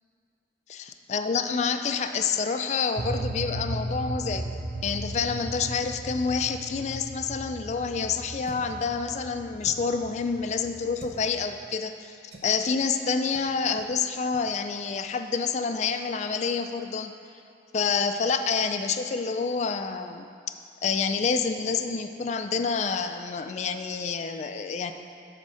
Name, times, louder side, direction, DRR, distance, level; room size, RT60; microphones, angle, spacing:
voice 1, 0.7-4.5 4.8-12.1 12.4-17.1 17.7-20.3 20.8-24.9, left 5 dB, 40° left, 8 dB, 0.3 m, -28 dB
sound 1, 3.0-11.5, right 1 dB, 30° right, 0.5 m, -36 dB
sound 2, 8.4-8.8 9.6-10.0 10.9-11.2 12.3-12.6 13.3-13.5 13.8-13.9 14.3-14.5, right 2 dB, 65° right, 0.9 m, -46 dB
9.7 x 3.6 x 6.3 m, 2.4 s
head